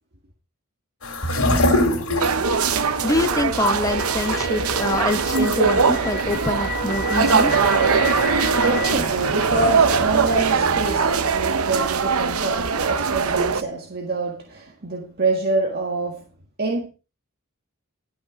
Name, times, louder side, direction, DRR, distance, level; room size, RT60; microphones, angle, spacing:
sound 1, 1.0-11.0, left 1 dB, 85° left, 3.0 m, -27 dB
sound 2, 2.2-13.6, right 5 dB, 80° right, 0.9 m, -21 dB
sound 3, 3.0-8.9, left 3 dB, 45° left, 2.6 m, -32 dB
voice 1, 3.0-7.5, left 2 dB, 15° left, 1.0 m, -25 dB
voice 2, 8.3-16.2 16.6-16.9, right 3 dB, 45° right, 1.8 m, -26 dB
12.5 x 6.0 x 5.2 m
head